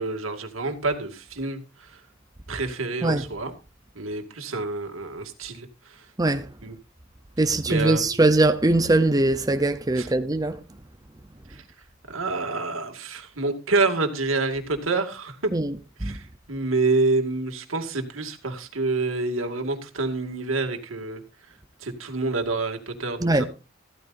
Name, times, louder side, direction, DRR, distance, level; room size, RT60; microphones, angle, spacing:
voice 1, 0.0-2.0 2.5-3.5 4.0-6.1 6.6-6.7 7.7-8.2 10.0-10.1 11.5-11.6 12.1-15.5 16.0-21.2 21.8-23.5, right 3 dB, 85° right, 2.2 m, -27 dB
voice 2, 7.4-10.6 15.5-15.7 16.0-16.2 23.2-23.4, right 2 dB, 20° right, 0.7 m, -21 dB
14.5 x 13.5 x 2.6 m
head